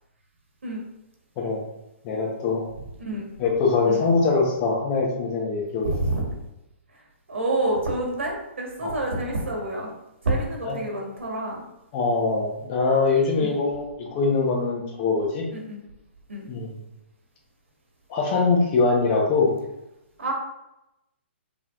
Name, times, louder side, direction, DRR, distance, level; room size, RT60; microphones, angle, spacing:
voice 1, 2.0-2.6 3.4-5.9 8.8-9.0 10.6-10.8 11.9-15.4 16.5-16.8 18.1-19.5, left 4 dB, 35° left, -1 dB, 1.0 m, -23 dB
voice 2, 5.8-6.2 7.3-9.9 10.2-11.6 13.4-13.5 15.5-15.8 16.3-16.5 20.2-20.3, right 2 dB, 85° right, -1 dB, 1.4 m, -28 dB
5.2 x 3.1 x 2.5 m, 0.87 s
hypercardioid pair, 135°, 7 cm